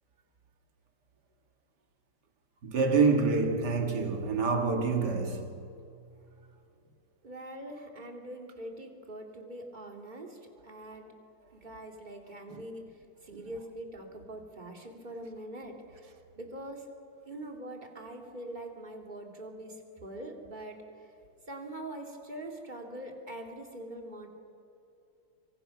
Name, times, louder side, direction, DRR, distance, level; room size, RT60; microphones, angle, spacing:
voice 1, 2.6-5.7, right 4 dB, 50° right, 2.1 m, -27 dB
voice 2, 7.2-11.1 11.5-12.9 13.2-16.9 17.3-19.7 20.0-20.8 21.5-24.3, right 1 dB, 20° right, 2.5 m, -43 dB
25.0 x 24.0 x 5.9 m
omnidirectional pair, 2.4 m